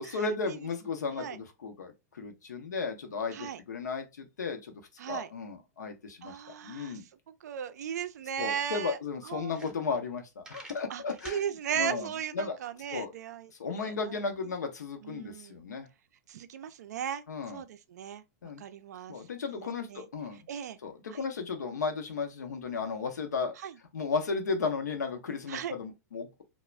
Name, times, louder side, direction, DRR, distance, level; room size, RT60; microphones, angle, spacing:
voice 1, 0.0-4.8 5.1-6.3 6.6-7.0 8.4-11.4 11.7-12.6 12.9-13.1 13.6-15.9 17.3-17.6 18.4-18.6 19.1-20.4 20.8-23.5 23.9-26.4, left 4 dB, 90° left, 0.6 m, -34 dB
voice 2, 5.0-5.3 6.2-9.0 9.2-9.7 10.9-13.5 13.8-13.9 15.0-15.6 16.3-17.2 17.5-18.2 18.6-19.2 19.6-20.1 20.5-20.8 21.1-21.2 23.6-23.8 25.5-25.7, right 9 dB, 75° right, 0.4 m, -37 dB
sound 1, 9.4-10.1 10.4-11.4, right 2 dB, 10° right, 0.6 m, -48 dB
2.4 x 2.0 x 3.0 m
hypercardioid pair, 120°, 9 cm